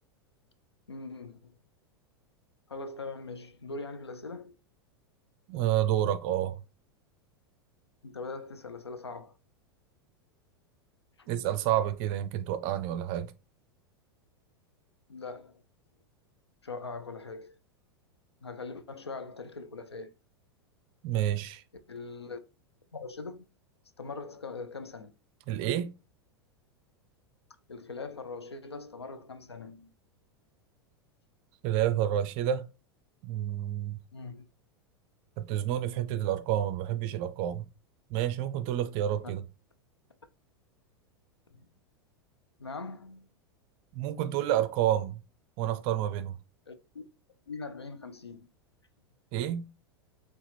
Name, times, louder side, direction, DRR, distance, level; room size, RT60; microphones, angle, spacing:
voice 1, 0.9-1.5 2.7-4.5 8.0-9.3 11.2-11.3 15.1-15.6 16.6-17.6 18.4-20.1 21.9-22.4 22.9-23.5 24.0-25.1 27.7-29.9 34.1-34.4 41.5-41.7 42.6-43.3 46.7-47.0 47.5-48.5, left 3 dB, 85° left, 0.5 m, -41 dB
voice 2, 5.5-6.6 11.3-13.3 21.0-21.6 25.5-25.9 31.6-32.7 33.2-34.0 35.4-37.7 38.1-39.4 43.9-45.2 45.6-46.4 49.3-49.7, right 11 dB, 40° right, 0.5 m, -29 dB
4.6 x 2.4 x 3.3 m
figure-of-eight pair, 90°, 13 cm